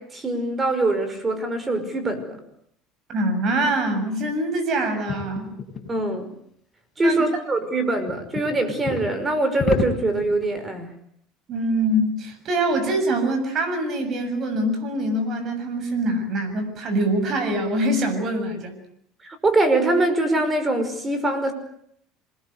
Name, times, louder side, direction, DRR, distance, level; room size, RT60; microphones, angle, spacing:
voice 1, 0.0-2.4 5.9-6.3 7.0-10.9 19.2-21.5, right 2 dB, 20° right, 9 dB, 5.5 m, -23 dB
voice 2, 3.1-5.5 7.0-7.2 11.5-18.7, right 1 dB, 40° right, 7 dB, 7.4 m, -24 dB
sound 1, 5.1-5.9 8.1-9.1 9.6-10.6, left 5 dB, 30° left, 6.8 m, -28 dB
27.5 x 21.0 x 8.2 m, 0.69 s
cardioid pair, 130°, 0 cm